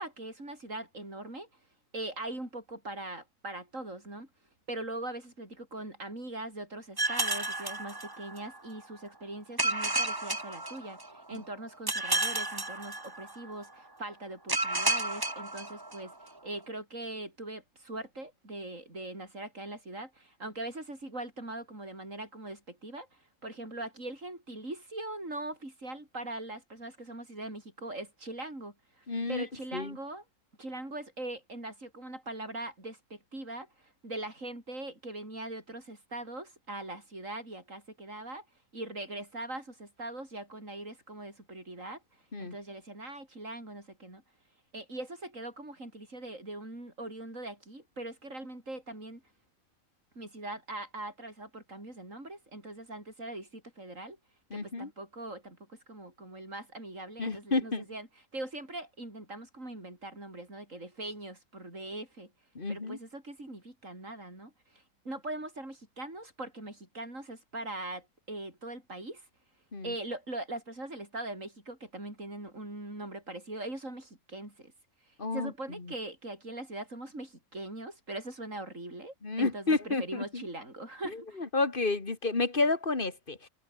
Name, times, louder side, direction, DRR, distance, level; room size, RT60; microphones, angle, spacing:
voice 1, 0.0-1.5 1.9-4.3 4.7-30.2 30.6-38.5 38.7-42.0 42.4-44.2 44.7-49.2 50.1-54.2 54.5-58.1 58.3-62.3 62.7-69.3 69.8-74.7 75.1-81.4, right 2 dB, 65° right, 8.3 m, -41 dB
sound 1, 7.0-8.6 9.6-11.3 11.9-13.5 14.5-16.2, right 2 dB, 15° right, 1.6 m, -32 dB
voice 2, 29.1-29.5 29.7-30.0 42.3-42.6 54.5-54.9 57.2-57.9 62.6-63.0 69.7-69.9 75.2-75.5 75.8-75.9 79.2-80.4 81.0-83.5, left 3 dB, 40° left, 2.3 m, -31 dB
omnidirectional pair, 1.4 m